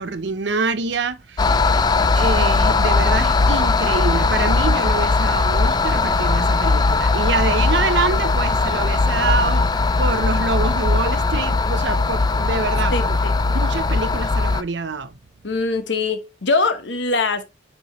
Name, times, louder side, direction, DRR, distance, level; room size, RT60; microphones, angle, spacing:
voice 1, 0.0-1.6 2.1-9.7 10.0-13.2 13.5-15.2, right 4 dB, 65° right, 0.8 m, -25 dB
sound 1, 1.4-14.6, left 3 dB, 20° left, 0.3 m, -19 dB
voice 2, 12.9-13.3 15.4-17.5, left 3 dB, 70° left, 1.1 m, -22 dB
8.9 x 4.3 x 3.1 m
head